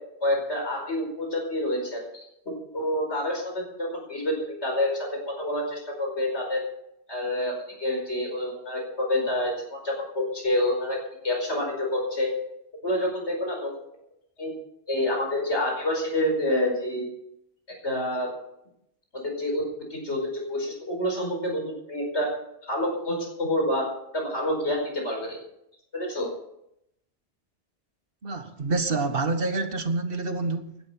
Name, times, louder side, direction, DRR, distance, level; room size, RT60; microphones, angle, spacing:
voice 1, 0.2-2.2 2.7-6.6 7.1-11.0 11.2-12.3 12.8-13.8 14.4-14.5 14.9-17.1 17.8-18.3 19.2-19.7 19.9-22.3 22.7-23.9 24.1-25.4 25.9-26.3, left 1 dB, 70° left, 5.3 m, -28 dB
voice 2, 28.2-30.8, right 3 dB, 50° right, 1.5 m, -27 dB
17.0 x 12.0 x 5.6 m
omnidirectional pair, 1.2 m